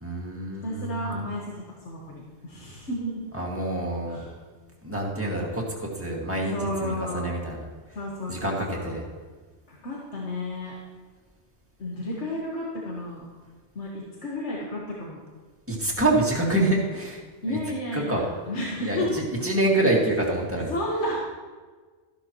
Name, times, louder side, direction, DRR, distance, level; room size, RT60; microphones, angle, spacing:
voice 1, 0.0-1.2 3.3-4.2 4.8-6.5 6.8-7.6 8.3-9.0 15.7-17.2 17.5-17.6 17.9-18.2 18.8-20.7, right 2 dB, 10° right, -3 dB, 2.0 m, -26 dB
voice 2, 0.6-3.2 4.1-4.3 6.5-7.4 7.9-8.9 9.7-10.8 11.8-13.3 13.8-15.2 17.4-19.1 19.5-19.7 20.7-21.2, left 1 dB, 80° left, -4 dB, 1.8 m, -32 dB
13.5 x 12.0 x 3.1 m, 1.4 s
omnidirectional pair, 1.2 m